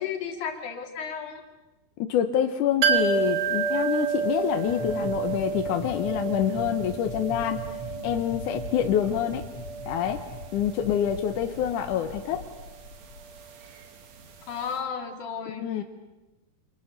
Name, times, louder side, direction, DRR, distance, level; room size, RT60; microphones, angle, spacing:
voice 1, 0.0-1.4 14.5-15.6, left 7 dB, 55° left, 4 dB, 3.8 m, -33 dB
voice 2, 2.0-7.6 8.0-9.5 9.9-10.3 10.5-12.4 15.6-15.8, left 9 dB, 70° left, 6 dB, 2.1 m, -26 dB
sound 1, 2.8-14.4 14.7-14.8, right 6 dB, 50° right, 2.7 m, -31 dB
sound 2, 4.6-13.2, left 1 dB, 35° left, 4.0 m, -40 dB
29.0 x 26.5 x 6.7 m, 1.0 s
omnidirectional pair, 4.6 m